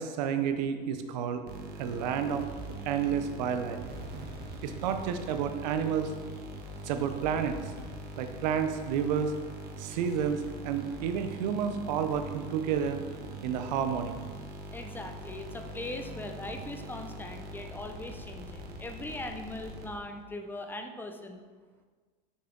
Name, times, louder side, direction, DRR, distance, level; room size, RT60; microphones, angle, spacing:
voice 1, 0.0-1.4 1.8-2.4 2.8-3.8 4.6-6.1 6.8-7.7 8.2-9.3 9.8-13.0 13.4-14.3, right 7 dB, 80° right, 8 dB, 0.7 m, -30 dB
sound 1, 1.5-20.2, right 1 dB, 50° right, 1.3 m, -43 dB
voice 2, 14.7-21.4, left 2 dB, 10° left, 5 dB, 0.6 m, -40 dB
6.3 x 5.6 x 3.8 m, 1.5 s
supercardioid pair, 115°, 21 cm